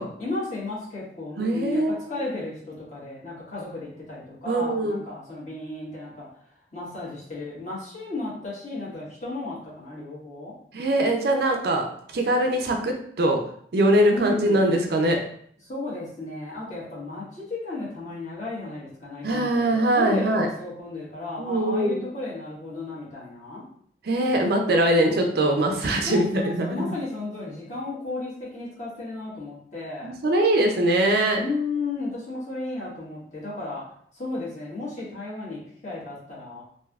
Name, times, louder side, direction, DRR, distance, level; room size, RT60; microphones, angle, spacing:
voice 1, 0.2-1.8 2.1-6.3 6.7-10.5 14.0-14.7 15.6-23.6 24.8-25.5 26.1-30.1 31.4-33.8 34.1-36.6, left 2 dB, 40° left, -7 dB, 1.3 m, -34 dB
voice 2, 1.4-2.0 4.5-5.0 10.7-11.8 12.1-13.4 13.7-15.2 19.2-20.5 21.4-22.0 24.0-26.7 30.0-31.4, right 1 dB, 55° right, 3 dB, 0.4 m, -22 dB
3.2 x 2.6 x 2.3 m, 0.62 s
head